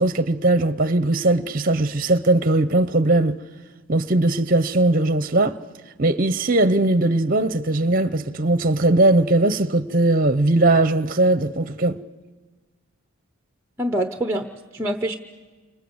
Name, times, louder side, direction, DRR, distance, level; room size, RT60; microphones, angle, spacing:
voice 1, 0.0-3.4 3.9-5.6 6.0-12.0, right 2 dB, 40° right, 0.8 m, -19 dB
voice 2, 13.8-15.1, right 1 dB, 10° right, 0.9 m, -25 dB
29.0 x 26.0 x 8.0 m
head